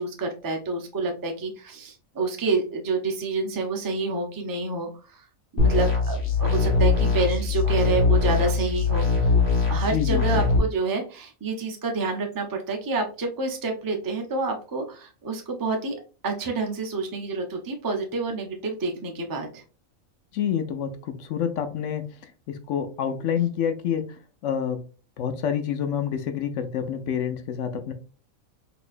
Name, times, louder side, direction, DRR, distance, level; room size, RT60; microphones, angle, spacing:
voice 1, 0.0-5.2 5.5-9.3 9.7-16.0 16.2-19.6, right 3 dB, 35° right, 3 dB, 0.3 m, -28 dB
sound 1, 5.6-10.6, left 4 dB, 50° left, 1.4 m, -22 dB
voice 2, 9.8-10.2 20.3-22.0 22.5-24.0 24.4-24.8 25.2-27.9, left 8 dB, 70° left, 8 dB, 0.9 m, -27 dB
4.1 x 2.9 x 2.5 m, 0.36 s
omnidirectional pair, 1.4 m